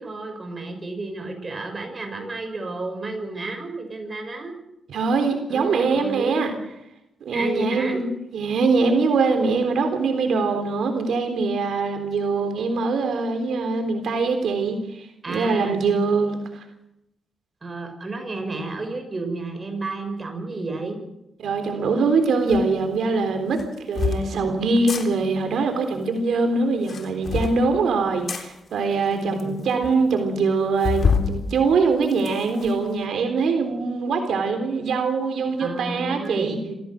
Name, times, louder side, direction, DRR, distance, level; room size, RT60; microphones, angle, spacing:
voice 1, 0.0-4.5 5.5-6.5 7.3-8.0 15.2-15.8 17.6-21.0 29.1-29.6 35.6-36.6, right 2 dB, 35° right, 5 dB, 6.5 m, -32 dB
voice 2, 4.9-6.5 7.2-16.6 21.4-23.6 23.9-36.7, right 4 dB, 80° right, 5 dB, 3.7 m, -23 dB
sound 1, 22.5-22.6 23.5-24.2 24.8-25.0 26.7-27.6 28.3-28.4 29.1-29.2 29.4-29.5 29.8-29.9 30.8-31.3 31.8-32.7, left 5 dB, 55° left, 3.5 m, -25 dB
26.5 x 16.5 x 6.5 m, 0.86 s
cardioid pair, 90°, 0 cm